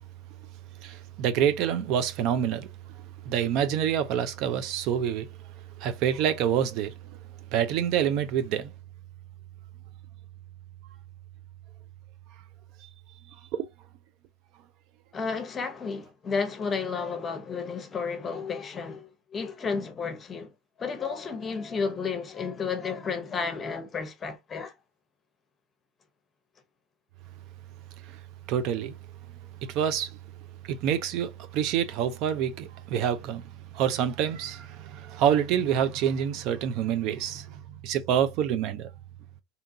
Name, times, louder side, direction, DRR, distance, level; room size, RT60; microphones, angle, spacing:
voice 1, 0.8-2.7 3.2-5.3 5.8-6.9 7.5-8.7 13.5-13.7 28.5-28.9 29.7-30.2 30.7-38.9, right 9 dB, 55° right, 0.4 m, -27 dB
voice 2, 15.1-20.5 20.8-24.7, left 5 dB, 25° left, 0.8 m, -32 dB
2.7 x 2.3 x 2.7 m
supercardioid pair, 105°, 0 cm